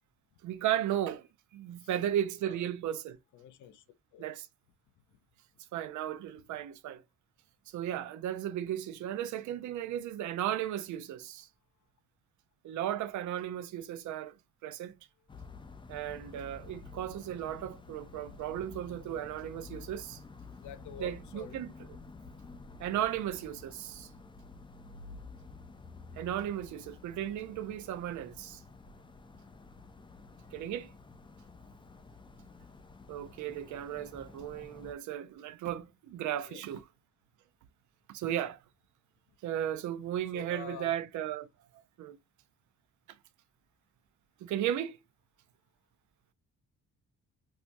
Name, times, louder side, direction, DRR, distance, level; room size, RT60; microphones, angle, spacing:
voice 1, 0.4-3.2 4.2-4.5 5.7-7.0 7.7-11.5 12.6-14.4 14.6-14.9 15.9-20.2 21.0-21.7 22.8-24.1 26.2-28.6 30.5-30.9 33.1-36.8 38.1-38.6 39.4-41.5 42.0-42.2 44.4-45.0, right 11 dB, 70° right, 0.5 m, -35 dB
voice 2, 3.3-3.8 4.1-4.2 5.1-5.2 15.3-15.6 20.6-21.6 36.5-36.6 40.3-41.0, left 9 dB, 75° left, 0.6 m, -47 dB
sound 1, 15.3-34.9, left 4 dB, 15° left, 0.4 m, -51 dB
4.3 x 2.2 x 2.5 m
cardioid pair, 90°, 30 cm